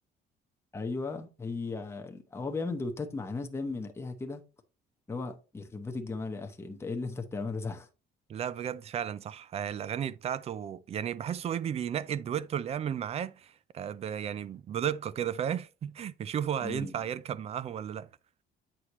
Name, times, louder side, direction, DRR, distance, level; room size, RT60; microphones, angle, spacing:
voice 1, 0.7-4.4 5.1-7.9 16.6-16.9, left 3 dB, 15° left, 0.9 m, -36 dB
voice 2, 8.3-18.1, right 9 dB, 35° right, 0.4 m, -34 dB
8.2 x 5.8 x 3.0 m
cardioid pair, 150°, 18 cm